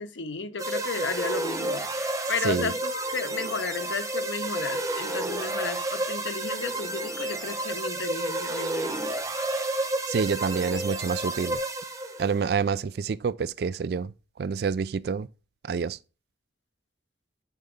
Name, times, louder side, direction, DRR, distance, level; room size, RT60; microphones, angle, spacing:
voice 1, 0.0-8.9, left 4 dB, 85° left, 0.8 m, -33 dB
sound 1, 0.6-12.4, right 1 dB, 15° right, 0.7 m, -31 dB
voice 2, 2.4-2.7 10.1-11.6 12.2-15.3 15.7-16.0, right 5 dB, 55° right, 0.3 m, -27 dB
8.2 x 3.9 x 3.5 m
head